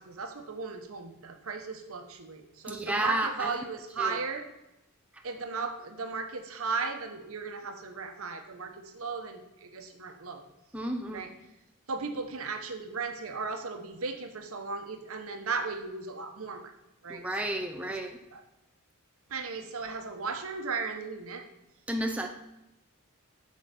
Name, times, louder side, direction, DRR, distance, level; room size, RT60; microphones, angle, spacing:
voice 1, 0.0-4.4 5.2-10.4 11.1-11.3 11.9-16.7 17.0-17.5 17.9-18.0 18.3-18.4 19.3-21.4, right 4 dB, 65° right, 5 dB, 1.0 m, -36 dB
voice 2, 2.7-3.5 4.0-4.1 10.7-11.3 17.1-18.2 21.9-22.3, right 1 dB, 5° right, 3 dB, 0.5 m, -31 dB
7.9 x 6.3 x 4.2 m, 0.92 s
head